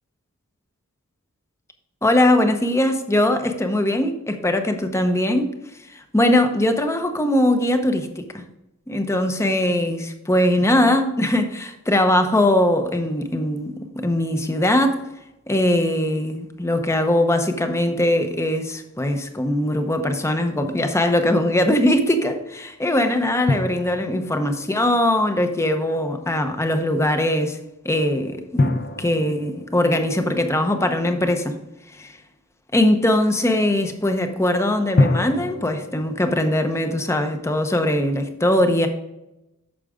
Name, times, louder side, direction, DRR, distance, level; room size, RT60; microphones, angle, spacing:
voice 1, 2.0-5.5 5.9-8.4 8.9-15.0 15.5-27.6 27.8-31.6 32.0-32.1 32.7-38.9, left 1 dB, 15° left, 6 dB, 0.8 m, -21 dB
sound 1, 23.5-25.7 28.6-31.5 35.0-36.9, left 2 dB, 45° left, 0.7 m, -27 dB
8.6 x 6.5 x 3.6 m, 0.92 s
head